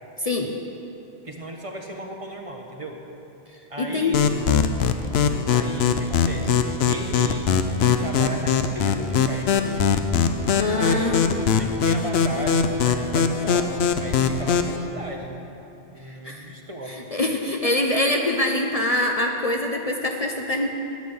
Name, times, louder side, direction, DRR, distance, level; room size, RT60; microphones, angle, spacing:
voice 1, 0.2-0.5 3.8-4.4 10.6-11.4 16.2-16.5 17.1-20.7, left 2 dB, 40° left, 2 dB, 0.7 m, -24 dB
voice 2, 1.2-3.0 3.7-4.3 5.5-7.5 7.8-9.8 10.8-15.3 15.9-17.1, right 1 dB, 35° right, 2 dB, 1.1 m, -36 dB
sound 1, 4.1-14.8, left 6 dB, 85° left, 0.9 m, -21 dB
10.5 x 9.5 x 7.1 m, 2.9 s
omnidirectional pair, 1.0 m